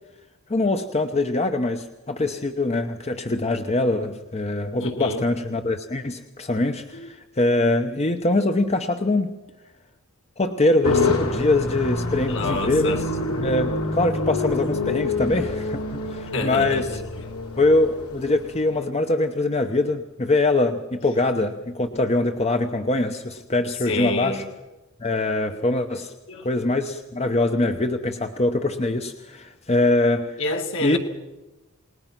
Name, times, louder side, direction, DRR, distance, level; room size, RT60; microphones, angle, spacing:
voice 1, 0.5-9.3 10.4-13.1 13.4-17.0 17.6-24.5 25.0-26.1 26.4-30.4 30.8-31.0, left 2 dB, 30° left, 6 dB, 0.9 m, -23 dB
voice 2, 4.8-5.2 6.9-7.1 12.3-13.0 15.3-15.4 16.3-16.8 23.9-24.4 26.3-26.4 30.4-31.0, left 2 dB, 60° left, 4 dB, 2.3 m, -27 dB
sound 1, 10.8-18.6, left 3 dB, 85° left, 3.2 m, -27 dB
28.5 x 19.5 x 6.0 m, 1.1 s
head